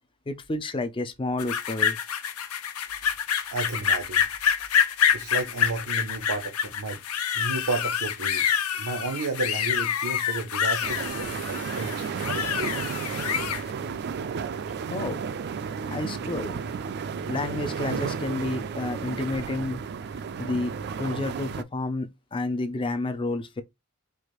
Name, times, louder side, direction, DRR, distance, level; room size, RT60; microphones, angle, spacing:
voice 1, 0.3-2.0 14.9-15.2 15.9-16.6 17.3-19.8 20.4-20.7 21.0-23.6, left 2 dB, 20° left, 0.4 m, -30 dB
sound 1, 1.4-13.6, left 8 dB, 70° left, 0.6 m, -27 dB
voice 2, 3.5-4.3 5.1-7.0 7.3-8.5 8.8-12.8, right 3 dB, 85° right, 0.7 m, -32 dB
sound 2, 10.8-21.6, right 6 dB, 45° right, 0.3 m, -33 dB
4.7 x 2.5 x 3.0 m
head